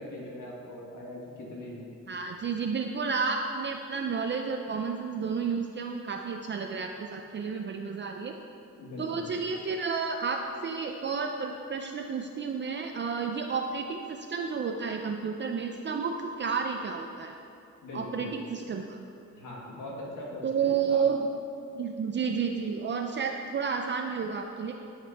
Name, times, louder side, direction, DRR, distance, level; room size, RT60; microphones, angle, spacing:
voice 1, 0.0-1.9 8.8-9.3 17.8-18.3 19.3-21.0, left 1 dB, 85° left, -3 dB, 1.7 m, -41 dB
voice 2, 2.1-8.4 9.0-17.4 17.9-19.0 20.4-21.2 21.8-24.7, right 5 dB, 40° right, 3 dB, 0.4 m, -31 dB
11.5 x 5.2 x 4.2 m, 2.6 s
cardioid pair, 120°, 30 cm